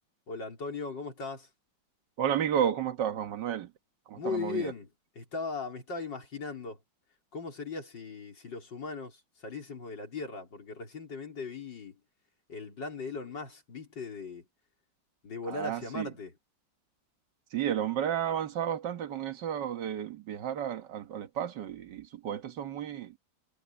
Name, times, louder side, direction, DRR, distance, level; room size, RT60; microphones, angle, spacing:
voice 1, 0.3-1.5 4.2-6.8 7.3-12.0 12.5-14.4 15.2-16.3, left 4 dB, 65° left, 4.6 m, -38 dB
voice 2, 2.2-3.7 4.1-4.7 15.5-16.1 17.5-23.1, right 9 dB, 65° right, 1.9 m, -32 dB
omnidirectional pair, 2.1 m